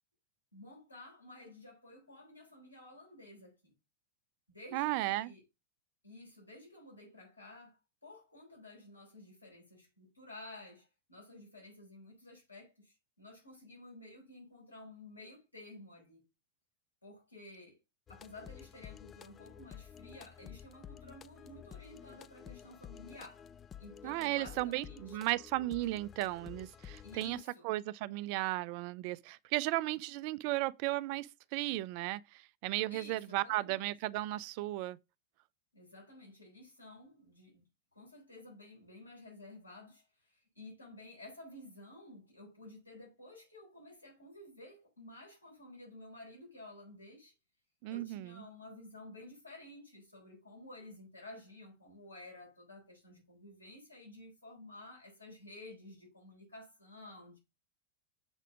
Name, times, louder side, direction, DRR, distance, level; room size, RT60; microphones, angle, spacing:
voice 1, 0.5-3.7 4.5-5.4 6.0-16.3 17.0-17.8 18.1-23.5 23.8-25.2 27.0-27.7 32.9-33.9 35.7-37.6 37.9-47.3 47.9-57.4, left 2 dB, 85° left, 4.9 m, -53 dB
voice 2, 4.7-5.3 24.0-27.4 27.6-35.0 47.8-48.3, right 17 dB, 45° right, 0.4 m, -35 dB
sound 1, 18.1-27.4, left 9 dB, 25° left, 0.3 m, -52 dB
6.9 x 4.2 x 4.9 m
figure-of-eight pair, 90°, 0 cm